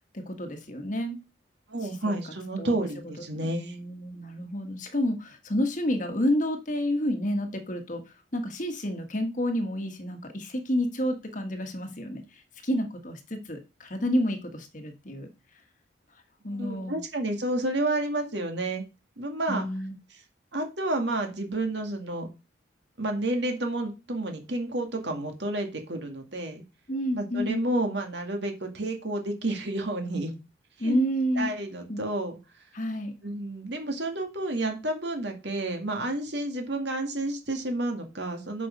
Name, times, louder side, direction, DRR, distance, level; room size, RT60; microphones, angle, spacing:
voice 1, 0.1-1.2 1.8-2.2 2.6-2.8 3.3-8.0 8.3-15.3 16.4-17.0 19.5-20.0 26.9-27.6 30.8-31.5 31.9-32.0 32.7-33.1, equal, 40° left, 6 dB, 1.5 m, -30 dB
voice 2, 1.7-3.8 16.5-18.8 19.2-19.7 20.5-22.3 23.0-26.6 27.1-30.3 30.8-31.0 31.4-32.4 33.2-38.7, right 2 dB, 65° right, 4 dB, 2.1 m, -30 dB
8.1 x 5.4 x 5.2 m, 0.29 s
head